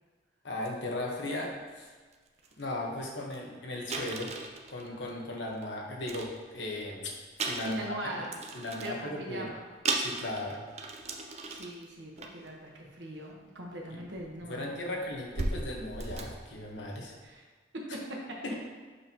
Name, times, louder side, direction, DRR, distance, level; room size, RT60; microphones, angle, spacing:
voice 1, 0.4-1.9 2.6-4.3 4.7-7.1 7.4-7.9 8.5-9.5 10.0-10.6 13.9-14.1 14.5-17.2 18.4-18.5, left 1 dB, 85° left, -1 dB, 1.2 m, -37 dB
sound 1, 0.6-0.7 1.2-1.4 2.1-2.2 2.4-2.6 3.0-3.1 3.3-3.4 3.9-5.6 6.0-6.9 7.3-9.0 9.5-9.6 9.8-11.8 12.2-12.5 13.6-13.7 14.1-17.1, right 3 dB, 35° right, 0.6 m, -37 dB
voice 2, 7.6-8.4 8.8-9.7 11.5-14.7 17.2-17.4 17.7-18.2 18.5-18.6, right 1 dB, 80° right, -1 dB, 1.2 m, -40 dB
6.7 x 5.4 x 2.9 m, 1.4 s
head